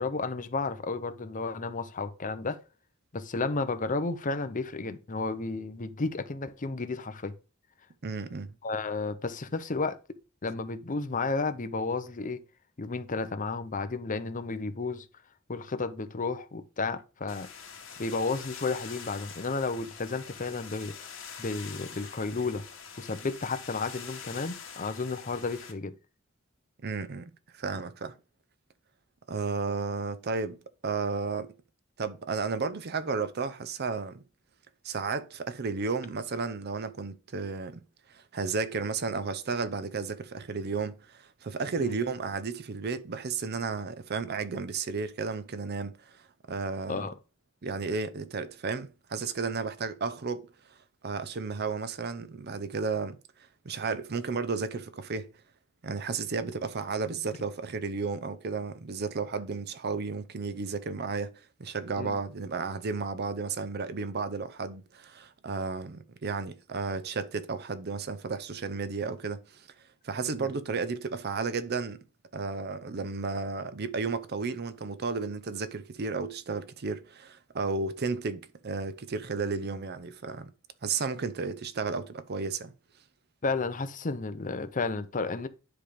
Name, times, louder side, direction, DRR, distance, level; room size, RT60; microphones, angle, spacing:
voice 1, 0.0-2.6 3.1-7.3 8.6-10.0 10.4-12.4 12.8-15.1 15.5-17.5 18.0-21.1 21.4-22.6 23.0-25.9 41.8-41.9 46.9-47.1 62.0-62.2 70.3-70.5 83.4-85.5, left 3 dB, 40° left, 0.7 m, -32 dB
voice 2, 8.0-8.5 26.8-28.1 29.3-31.5 32.0-34.2 34.8-37.8 38.1-46.2 46.5-47.1 47.6-50.5 51.0-53.2 53.6-55.3 55.8-69.7 70.0-72.0 72.3-80.5 80.8-82.7, right 4 dB, 55° right, 0.6 m, -33 dB
sound 1, 17.3-25.7, left 7 dB, 70° left, 1.9 m, -45 dB
10.0 x 3.4 x 5.1 m
head